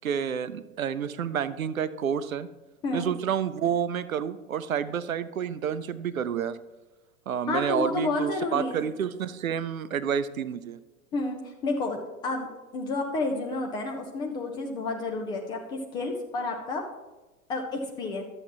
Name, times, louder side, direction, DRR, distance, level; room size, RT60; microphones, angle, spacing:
voice 1, 0.0-2.5 2.9-6.6 7.3-10.8, right 8 dB, 75° right, 15 dB, 0.6 m, -29 dB
voice 2, 7.5-8.8 11.1-16.8 17.5-18.2, left 3 dB, 10° left, 2 dB, 0.3 m, -30 dB
12.0 x 7.7 x 3.0 m, 1.1 s
figure-of-eight pair, 90°, 42 cm